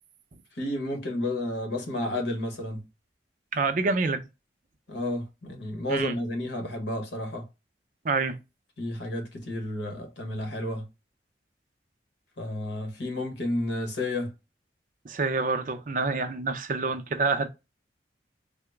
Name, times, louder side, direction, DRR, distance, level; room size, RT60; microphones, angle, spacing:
voice 1, 0.6-2.8 4.9-7.4 8.8-10.9 12.4-14.3, left 1 dB, 85° left, 1.1 m, -31 dB
voice 2, 3.5-4.2 5.9-6.2 8.0-8.4 15.0-17.5, right 4 dB, 45° right, 0.4 m, -27 dB
3.8 x 2.0 x 3.3 m
head